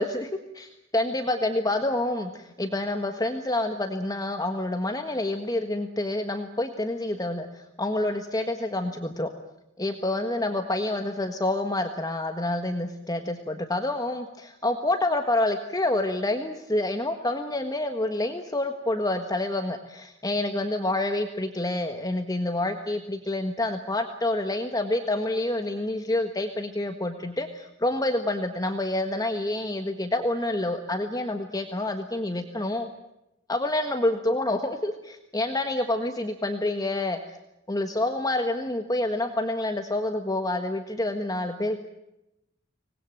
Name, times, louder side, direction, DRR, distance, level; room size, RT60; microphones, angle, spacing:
voice 1, 0.0-9.3 9.8-32.9 33.5-37.2 37.7-41.8, left 1 dB, 20° left, 6 dB, 1.5 m, -28 dB
25.5 x 20.0 x 9.0 m, 0.88 s
head